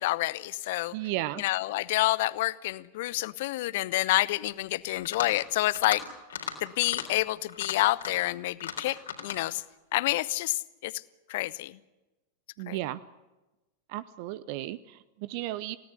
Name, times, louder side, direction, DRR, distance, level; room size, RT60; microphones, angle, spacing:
voice 1, 0.0-0.9 1.4-6.0 6.6-9.6 9.9-11.0 11.3-11.8 12.7-12.8, left 17 dB, 50° left, 20 dB, 0.8 m, -28 dB
voice 2, 0.9-1.4 12.6-13.0 13.9-15.8, right 15 dB, 45° right, 17 dB, 0.7 m, -34 dB
sound 1, 4.9-5.4 5.7-6.0 6.3-6.6 6.8-7.1 7.5-8.3 8.6-9.4, left 8 dB, 65° left, 3.9 m, -36 dB
29.5 x 17.5 x 8.2 m, 1.1 s
figure-of-eight pair, 90°, 0 cm